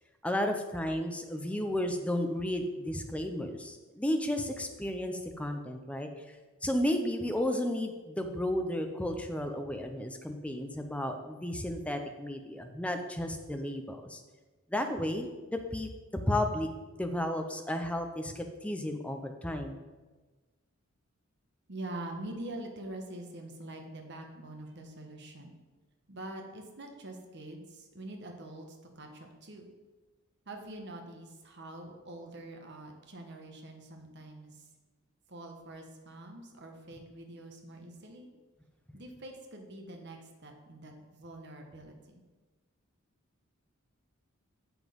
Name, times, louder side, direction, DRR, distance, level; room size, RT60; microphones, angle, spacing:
voice 1, 0.2-6.1 6.6-14.2 14.7-15.9 16.3-16.7 17.0-19.8, left 1 dB, 5° left, 5 dB, 0.6 m, -33 dB
voice 2, 21.7-25.5 26.1-29.7 30.5-34.7 35.3-38.3 38.9-42.2, right 1 dB, 55° right, 3 dB, 1.3 m, -45 dB
7.3 x 6.1 x 5.2 m, 1.2 s
head